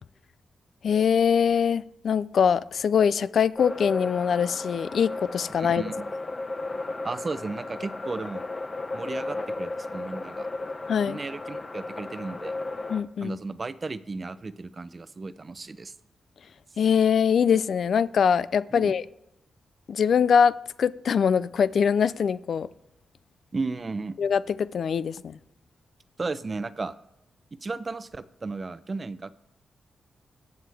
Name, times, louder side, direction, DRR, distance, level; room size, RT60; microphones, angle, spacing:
voice 1, 0.8-5.8 10.9-11.2 12.9-13.4 16.8-19.0 19.9-20.5 20.8-22.7 24.2-25.4, left 7 dB, 70° left, 0.4 m, -23 dB
sound 1, 3.6-13.0, left 2 dB, 35° left, 0.9 m, -35 dB
voice 2, 5.6-6.1 7.0-8.5 8.9-10.5 11.1-12.5 13.2-15.9 18.7-18.9 23.5-24.2 26.2-27.0 27.6-29.3, right 3 dB, 35° right, 0.6 m, -34 dB
22.0 x 7.9 x 3.5 m
cardioid pair, 80°, 0 cm